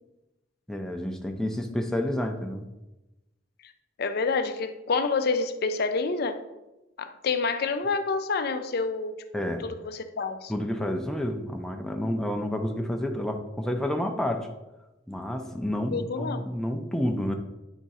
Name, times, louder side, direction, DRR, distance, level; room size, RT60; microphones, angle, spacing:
voice 1, 0.7-2.7 9.3-9.7 10.5-14.5 15.1-17.3, left 1 dB, 5° left, 3 dB, 0.5 m, -29 dB
voice 2, 4.0-6.4 7.0-9.2 9.6-10.5 15.9-16.4, left 4 dB, 55° left, 9 dB, 0.5 m, -28 dB
9.0 x 3.7 x 4.1 m, 1.0 s
head